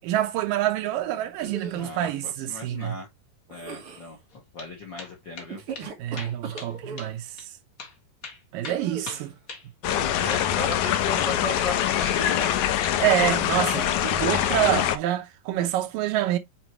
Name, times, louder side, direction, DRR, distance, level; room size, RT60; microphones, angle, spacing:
voice 1, 0.0-3.0 6.0-7.5 8.5-9.3 13.0-16.4, right 13 dB, 80° right, 2.6 m, -27 dB
sound 1, 1.4-2.0 3.5-4.1 5.4-7.1 8.6-9.4 11.1-11.6 11.9-12.3 13.7-14.2, right 5 dB, 50° right, 1.9 m, -39 dB
voice 2, 1.8-3.1 3.5-4.2 4.5-5.6 9.8-12.7, left 4 dB, 55° left, 1.3 m, -35 dB
sound 2, 4.3-4.7 5.0-5.5 5.7-5.9 6.2-6.7 7.0-7.1 7.4-7.5 7.8-7.9 8.2-10.0 10.3-10.5 10.7-10.8 11.2-12.1 12.4-13.4 13.7-14.2, left 4 dB, 35° left, 1.4 m, -40 dB
sound 3, 9.8-15.0, left 11 dB, 75° left, 1.9 m, -24 dB
7.5 x 4.4 x 2.9 m
omnidirectional pair, 4.0 m